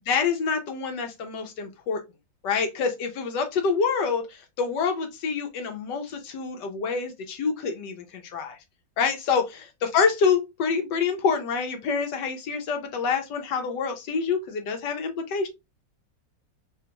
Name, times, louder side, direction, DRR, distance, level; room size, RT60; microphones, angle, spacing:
voice 1, 0.1-2.0 2.4-8.6 9.0-15.5, left 5 dB, 70° left, 1.3 m, -27 dB
4.2 x 2.4 x 2.8 m
omnidirectional pair, 2.0 m